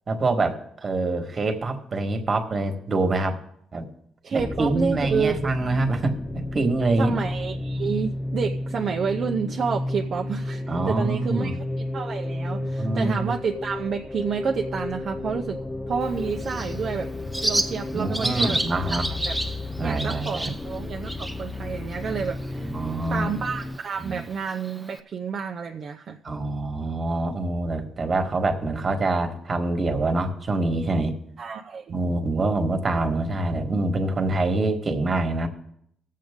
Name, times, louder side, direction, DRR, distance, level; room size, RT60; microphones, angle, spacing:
voice 1, 0.1-3.3 3.7-3.8 4.3-6.1 6.5-7.1 10.7-11.5 12.6-13.3 17.9-19.1 19.8-20.5 22.6-23.3 24.0-24.2 26.2-31.1 31.9-35.5, right 2 dB, 35° right, 5 dB, 1.5 m, -25 dB
voice 2, 4.2-5.5 7.0-15.6 15.9-17.1 17.4-18.8 19.2-19.4 19.8-22.7 23.1-26.2 31.4-32.0, right 6 dB, 55° right, 2 dB, 0.6 m, -29 dB
sound 1, 4.4-23.8, left 1 dB, 20° left, 0.5 m, -32 dB
Bird, 16.0-25.0, right 1 dB, 5° right, 0.8 m, -33 dB
18.0 x 7.5 x 3.7 m, 0.70 s
cardioid pair, 90°, 0 cm